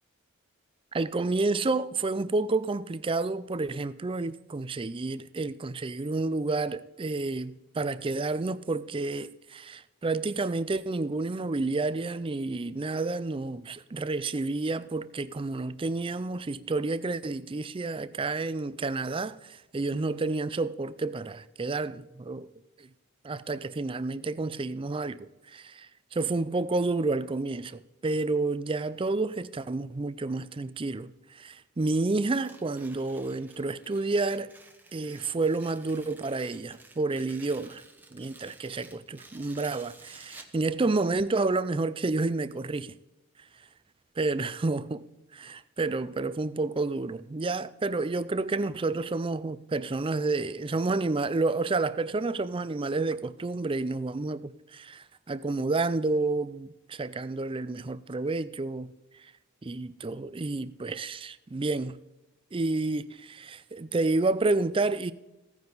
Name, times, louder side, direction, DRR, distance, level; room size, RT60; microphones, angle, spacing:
voice 1, 0.9-22.5 22.8-22.9 23.2-34.5 34.9-37.8 38.1-43.0 44.2-45.0 45.3-58.9 59.2-59.3 59.6-62.0 62.5-65.1, right 3 dB, 25° right, 0.4 m, -30 dB
Tearing, 32.3-40.6, right 2 dB, 10° right, 0.9 m, -53 dB
16.0 x 9.5 x 4.0 m
head